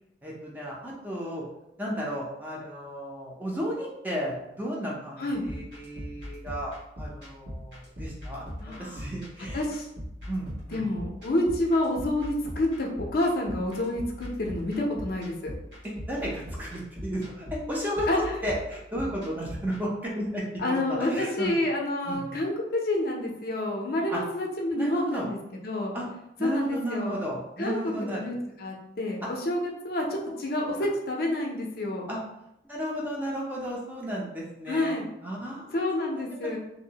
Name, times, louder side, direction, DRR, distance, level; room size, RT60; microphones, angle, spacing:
voice 1, 0.2-1.4 1.8-8.5 8.8-9.6 10.3-11.0 15.8-18.1 18.4-21.5 22.1-22.4 24.1-24.2 24.8-25.3 25.9-26.0 26.4-28.3 30.3-30.4 32.1-32.2 32.6-36.5, equal, 10° right, -4 dB, 0.4 m, -34 dB
sound 1, 5.4-19.8, equal, 75° right, 1.0 m, -41 dB
voice 2, 8.6-9.0 9.5-9.9 10.7-15.5 18.1-18.3 20.6-25.4 25.6-25.9 26.4-27.2 27.6-32.1 34.7-35.1 35.7-36.6, left 1 dB, 55° left, 0 dB, 0.4 m, -28 dB
2.6 x 2.0 x 2.7 m, 0.86 s
head